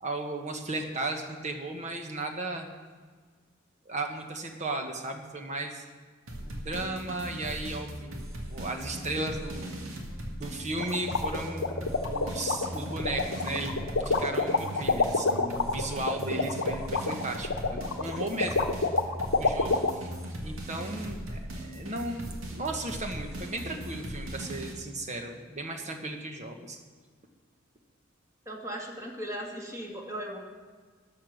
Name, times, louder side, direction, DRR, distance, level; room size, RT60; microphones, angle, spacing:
voice 1, 0.0-2.7 3.8-5.8 6.4-9.8 10.3-11.7 12.0-18.8 19.3-20.1 20.4-26.8, right 2 dB, 35° right, 4 dB, 1.4 m, -35 dB
sound 1, 6.3-24.7, right 1 dB, 80° right, 2.2 m, -39 dB
sound 2, 10.8-19.9, left 3 dB, 90° left, 0.9 m, -27 dB
voice 2, 28.5-30.4, right 1 dB, 15° right, -1 dB, 2.1 m, -37 dB
13.0 x 9.0 x 6.5 m, 1.5 s
head